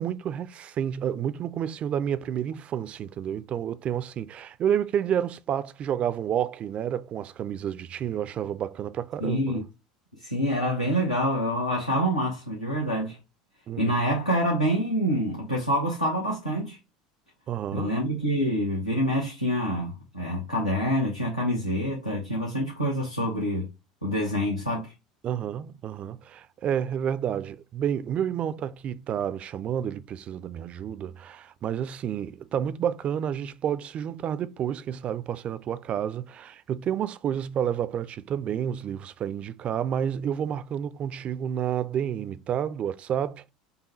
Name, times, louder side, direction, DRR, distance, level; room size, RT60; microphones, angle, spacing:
voice 1, 0.0-9.6 13.7-13.9 17.5-17.9 25.2-43.5, right 9 dB, 35° right, 0.4 m, -30 dB
voice 2, 9.2-9.6 10.2-13.2 13.8-16.8 17.7-23.7 24.0-24.9, equal, 85° left, 0.9 m, -26 dB
5.3 x 2.3 x 3.0 m
figure-of-eight pair, 70°, 4 cm